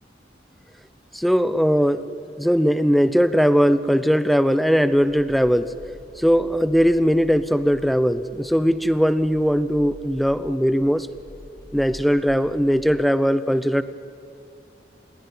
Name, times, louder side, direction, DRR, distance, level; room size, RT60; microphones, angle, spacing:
voice 1, 1.1-5.7 6.2-11.1 11.7-13.8, equal, ahead, 14 dB, 0.8 m, -19 dB
sound 1, 4.9-12.9, equal, 20° left, 6.8 m, -46 dB
27.5 x 21.0 x 9.7 m, 2.4 s
head